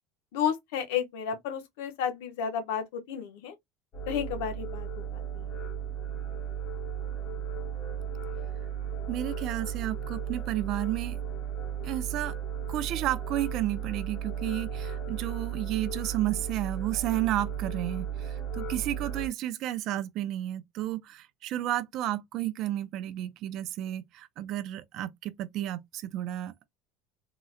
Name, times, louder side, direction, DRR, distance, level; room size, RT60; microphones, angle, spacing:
voice 1, 0.3-3.5 4.1-5.6, left 8 dB, 85° left, 0.8 m, -32 dB
sound 1, 3.9-19.3, right 7 dB, 40° left, 1.0 m, -35 dB
voice 2, 9.1-11.2 11.8-12.3 12.7-26.7, right 13 dB, 45° right, 0.4 m, -32 dB
3.7 x 2.0 x 2.5 m
cardioid pair, 160°, 0 cm